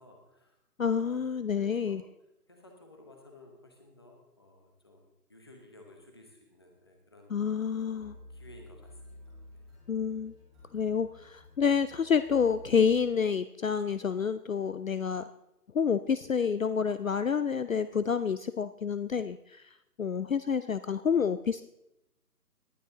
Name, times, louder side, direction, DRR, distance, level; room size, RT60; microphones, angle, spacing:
voice 1, 0.0-1.2 1.5-2.1 2.5-7.4 7.9-9.2, left 1 dB, 15° left, 2 dB, 1.1 m, -55 dB
voice 2, 0.8-2.0 7.3-8.1 9.9-10.3 10.7-15.2 15.7-21.6, left 6 dB, 55° left, 13 dB, 0.6 m, -28 dB
sound 1, 8.0-13.6, left 2 dB, ahead, 2.2 m, -52 dB
18.5 x 10.5 x 3.9 m, 0.87 s
hypercardioid pair, 170°, 48 cm